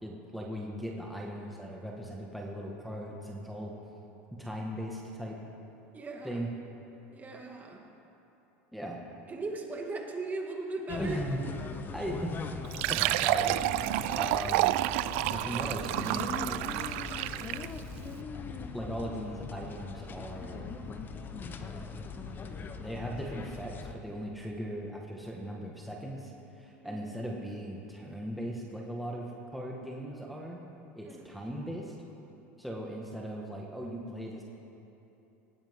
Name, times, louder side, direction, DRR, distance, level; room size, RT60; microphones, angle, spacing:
voice 1, 0.0-3.7 4.4-5.4 6.2-6.5 8.7-9.0 11.0-11.4 11.9-12.4 12.9-13.6 14.1-14.9 15.3-17.1 18.7-20.7 22.8-30.6 30.9-31.9 32.6-34.4, equal, ahead, -3 dB, 1.7 m, -38 dB
voice 2, 5.9-6.5 7.1-7.8 9.3-11.2 26.8-27.1 31.0-31.3, right 3 dB, 25° right, 1 dB, 2.1 m, -38 dB
sound 1, 10.9-23.9, left 5 dB, 30° left, 1.0 m, -41 dB
Fill (with liquid), 12.6-17.8, right 17 dB, 70° right, 0.4 m, -29 dB
19.0 x 15.5 x 3.8 m, 3.0 s
supercardioid pair, 110°, 7 cm